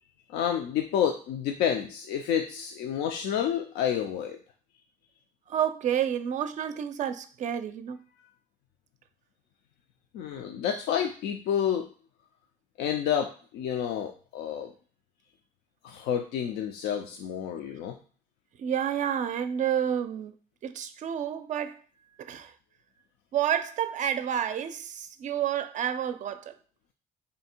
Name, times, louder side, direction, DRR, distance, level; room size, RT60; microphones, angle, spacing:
voice 1, 0.3-4.4 10.1-11.9 12.8-14.7 15.8-18.0, left 9 dB, 80° left, 0.4 m, -29 dB
voice 2, 5.5-8.0 18.6-20.3 20.6-21.8 22.2-22.5 23.3-26.5, right 9 dB, 45° right, 0.4 m, -29 dB
3.3 x 2.7 x 4.3 m
cardioid pair, 110°, 17 cm